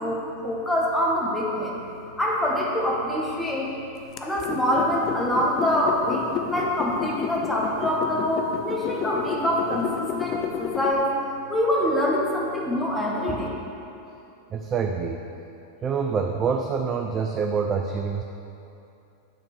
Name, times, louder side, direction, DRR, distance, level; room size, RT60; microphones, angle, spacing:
voice 1, 0.0-1.7 2.2-3.7 4.2-11.1 11.5-13.5, equal, 10° left, -4 dB, 1.6 m, -25 dB
sound 1, 4.2-10.9, left 8 dB, 40° left, 0.6 m, -31 dB
voice 2, 14.5-15.2 15.8-18.2, right 5 dB, 30° right, 3 dB, 0.5 m, -26 dB
9.1 x 4.3 x 6.1 m, 2.8 s
hypercardioid pair, 95°, 0 cm